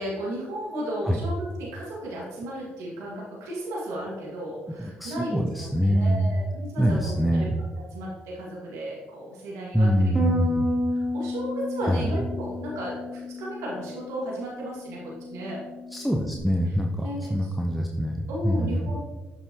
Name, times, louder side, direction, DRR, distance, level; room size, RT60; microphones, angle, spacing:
voice 1, 0.0-5.4 5.8-7.5 7.9-10.1 10.9-15.6 17.0-17.3 18.3-19.0, right 1 dB, 80° right, -4 dB, 1.9 m, -34 dB
voice 2, 4.8-6.4 6.8-7.5 9.7-10.7 11.8-12.1 15.9-18.9, equal, ahead, 1 dB, 0.7 m, -24 dB
Bass guitar, 10.2-16.4, left 1 dB, 20° right, 1.8 m, -32 dB
7.5 x 5.5 x 2.9 m, 1.2 s
supercardioid pair, 60°, 5 cm